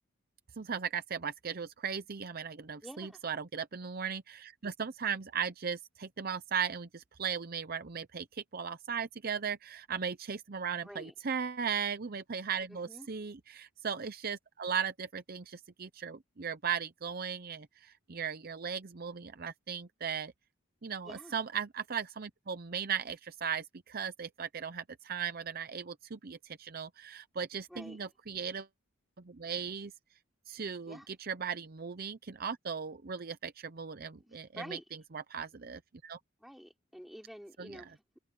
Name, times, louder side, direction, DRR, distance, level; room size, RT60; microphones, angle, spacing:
voice 1, 0.6-20.3 20.8-28.7 29.3-29.9 30.5-31.0 31.3-34.8 35.3-36.2 37.6-37.7, right 7 dB, 45° right, 0.6 m, -37 dB
voice 2, 2.8-3.2 10.8-11.1 12.7-13.1 21.0-21.4 27.7-28.0 30.8-31.1 34.1-34.9 36.4-38.2, equal, ahead, 3.8 m, -49 dB
head